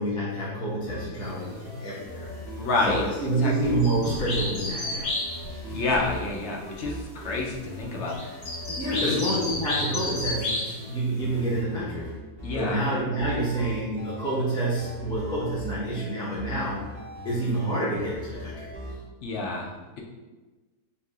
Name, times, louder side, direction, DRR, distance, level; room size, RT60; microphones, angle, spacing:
voice 1, 0.0-2.3 2.9-5.1 5.6-5.8 8.7-12.1 12.5-16.8 17.2-19.0, right 1 dB, 5° left, -7 dB, 0.4 m, -28 dB
sound 1, 0.8-19.0, left 1 dB, 30° right, 0.9 m, -40 dB
sound 2, 1.2-1.3 2.9-3.0 3.8-6.1 7.2-7.4 7.7-11.1, left 1 dB, 85° left, 1.7 m, -31 dB
voice 2, 2.6-3.1 3.4-3.7 5.7-8.4 8.9-9.2 12.4-12.8 19.2-20.0, left 3 dB, 65° left, -1 dB, 0.7 m, -29 dB
sound 3, 3.6-5.5 5.8-8.2, right 2 dB, 70° right, 1.1 m, -42 dB
5.6 x 2.7 x 2.3 m, 1.2 s
omnidirectional pair, 1.6 m